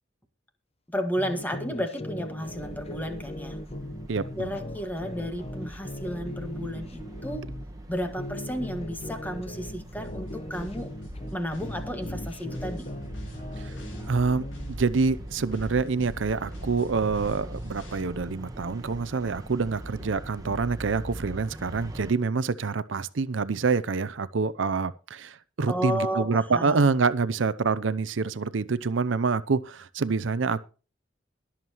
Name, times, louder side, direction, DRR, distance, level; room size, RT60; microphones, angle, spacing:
voice 1, 0.9-3.6 4.3-7.5 7.9-10.9 11.3-12.9 25.7-26.8, equal, 10° left, 1.7 m, -32 dB
sound 1, 1.2-7.6 8.1-11.4 11.6-14.8, left 1 dB, 35° left, 0.9 m, -39 dB
sound 2, 2.4-22.1, right 1 dB, 20° right, 1.5 m, -42 dB
voice 2, 4.1-4.5 13.6-13.7 14.1-30.6, right 4 dB, 70° right, 0.6 m, -26 dB
sound 3, 10.0-18.0, left 1 dB, 75° left, 4.6 m, -42 dB
22.0 x 7.3 x 3.0 m
head